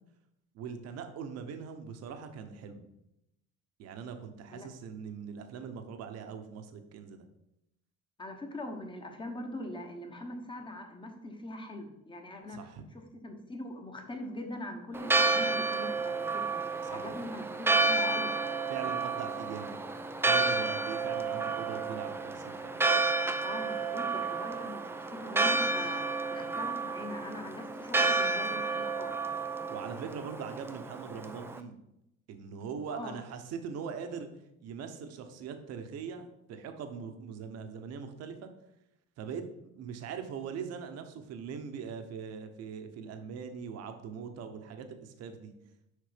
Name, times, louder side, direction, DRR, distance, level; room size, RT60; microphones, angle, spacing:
voice 1, 0.5-2.8 3.8-7.2 12.5-12.8 16.8-17.0 18.7-19.8 20.3-22.8 29.7-31.7 32.3-34.3 34.6-38.5 39.2-45.5, right 6 dB, 55° right, 7 dB, 1.0 m, -41 dB
voice 2, 8.2-12.7 13.2-18.3 23.4-29.2 32.9-33.1, left 1 dB, 15° left, 4 dB, 1.2 m, -42 dB
Church bell, 14.9-31.6, right 3 dB, 10° right, 0.4 m, -31 dB
6.6 x 5.1 x 5.1 m, 0.84 s
cardioid pair, 130°, 31 cm